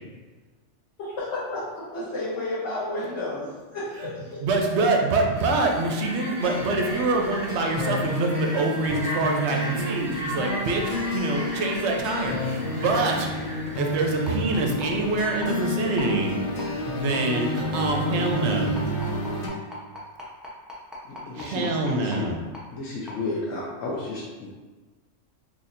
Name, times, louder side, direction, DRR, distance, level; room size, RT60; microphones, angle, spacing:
voice 1, 1.0-4.4, left 2 dB, 65° left, -10 dB, 1.2 m, -32 dB
voice 2, 4.4-13.3 13.8-16.4 16.9-18.8 21.3-22.4, right 2 dB, 70° right, 2 dB, 0.8 m, -25 dB
sound 1, 5.3-14.3, right 1 dB, 30° right, 1.0 m, -36 dB
sound 2, 6.4-19.5, left 1 dB, 45° left, 0.7 m, -30 dB
sound 3, 14.3-14.4 14.8-14.9 15.4-15.5 16.0-16.1 16.6-16.7 17.1-17.2 17.7-17.8 18.3-18.4 18.8-22.2 22.5-22.6 23.1-23.2, left 1 dB, ahead, 0.4 m, -38 dB
voice 3, 21.0-22.3 22.7-24.5, left 2 dB, 85° left, -4 dB, 1.0 m, -32 dB
4.1 x 3.0 x 2.5 m, 1.3 s
omnidirectional pair, 1.3 m